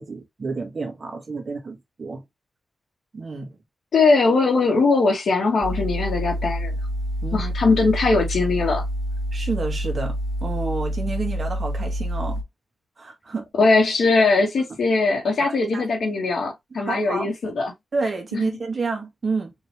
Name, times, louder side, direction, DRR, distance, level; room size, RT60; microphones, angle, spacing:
voice 1, 0.0-2.2 3.1-3.6 7.2-7.5 9.3-12.4 13.0-13.5 15.4-15.8 16.7-17.3 17.9-19.5, right 3 dB, 40° right, 1.6 m, -29 dB
voice 2, 3.9-6.7 7.3-8.8 13.6-17.7 18.3-18.4, left 3 dB, 75° left, 2.3 m, -20 dB
sound 1, 5.6-12.4, equal, 20° right, 2.0 m, -27 dB
4.6 x 3.1 x 3.1 m
wide cardioid pair, 130°, 0 cm